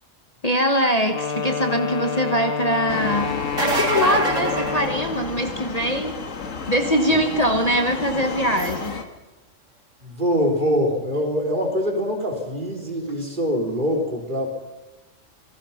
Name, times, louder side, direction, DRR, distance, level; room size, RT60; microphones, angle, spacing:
voice 1, 0.4-6.2 6.7-9.0, equal, 30° left, 5 dB, 1.3 m, -22 dB
Wind instrument woodwind instrument, 1.1-5.4, left 6 dB, 50° left, 1.1 m, -28 dB
sound 1, 2.9-9.0, left 5 dB, 85° left, 2.0 m, -32 dB
sound 2, 3.4-5.6 11.2-11.3 13.1-13.2, right 3 dB, 80° right, 3.3 m, -26 dB
voice 2, 10.0-14.5, equal, 40° right, 1 dB, 3.9 m, -24 dB
27.0 x 18.5 x 5.8 m, 1.1 s
omnidirectional pair, 1.3 m